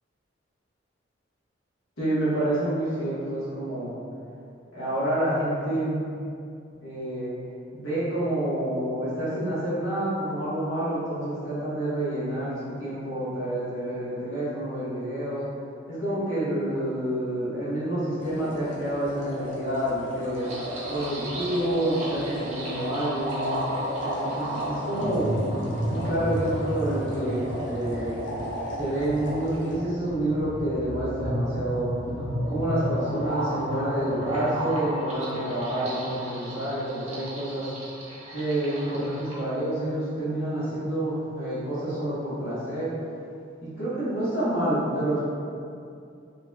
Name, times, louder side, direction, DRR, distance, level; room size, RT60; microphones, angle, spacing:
voice 1, 2.0-3.9 4.7-6.1 6.8-7.3 7.7-15.5 15.9-20.5 20.9-23.6 24.0-28.2 28.7-31.9 32.5-37.7 38.3-42.9 43.6-45.2, right 1 dB, 90° left, -10 dB, 1.3 m, -28 dB
sound 1, 18.2-29.8, right 1 dB, 70° left, 0.6 m, -37 dB
sound 2, 20.4-39.4, equal, 35° right, 0.6 m, -33 dB
4.0 x 2.8 x 2.3 m, 2.5 s
head